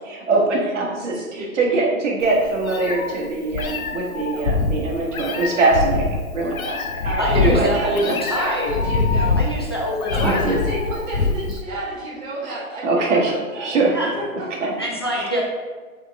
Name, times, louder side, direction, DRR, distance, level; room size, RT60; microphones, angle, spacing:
voice 1, 0.1-6.1 6.3-7.0 7.3-7.7 8.1-8.2 10.2-10.6 12.4-14.0 14.6-14.7 15.1-15.4, right 3 dB, 55° right, -2 dB, 1.7 m, -22 dB
voice 2, 1.1-1.5 7.0-9.4 10.1-13.8 14.2-14.3, right 1 dB, 20° right, -7 dB, 1.7 m, -30 dB
Meow, 2.2-11.6, left 4 dB, 75° left, 0.9 m, -24 dB
voice 3, 7.2-8.8 9.4-10.4 13.9-14.1 14.8-15.4, equal, 20° left, -3 dB, 0.3 m, -24 dB
7.8 x 3.5 x 3.6 m, 1.5 s
hypercardioid pair, 155°, 43 cm